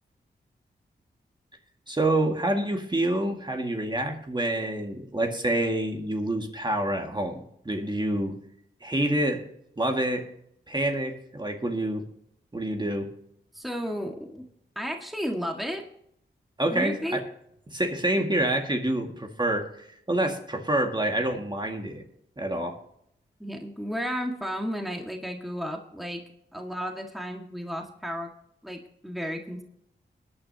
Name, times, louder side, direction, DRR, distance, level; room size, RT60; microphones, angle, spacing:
voice 1, 1.9-8.4 8.8-9.4 9.8-10.3 10.7-12.1 12.5-13.1 16.6-17.2 17.7-22.0 22.4-22.8, right 1 dB, 25° right, 3 dB, 2.0 m, -27 dB
voice 2, 13.5-14.5 14.8-15.8 16.7-17.2 23.4-26.2 26.5-28.3 28.6-29.6, equal, ahead, 2 dB, 1.8 m, -33 dB
21.0 x 9.7 x 2.9 m, 0.74 s
cardioid pair, 55°, 19 cm